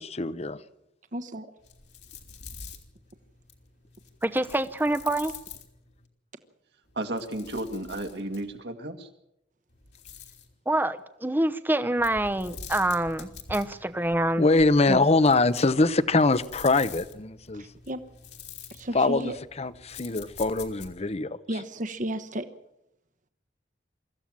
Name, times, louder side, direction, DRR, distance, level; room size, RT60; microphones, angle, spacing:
voice 1, 0.2-0.6 14.4-17.6 18.9-19.3 19.6-21.4, left 3 dB, 35° left, 0.8 m, -23 dB
voice 2, 1.1-1.5 17.5-18.0 18.7-19.4 21.5-22.5, right 1 dB, 45° right, 1.2 m, -33 dB
sound 1, 1.6-6.1 6.9-8.6 9.7-10.5 12.0-21.1, left 6 dB, 65° left, 3.0 m, -46 dB
voice 3, 4.2-5.3 10.7-14.5 14.9-15.0, right 1 dB, 10° right, 0.8 m, -26 dB
voice 4, 7.0-9.1, right 1 dB, 65° right, 2.1 m, -33 dB
25.0 x 14.5 x 7.5 m
head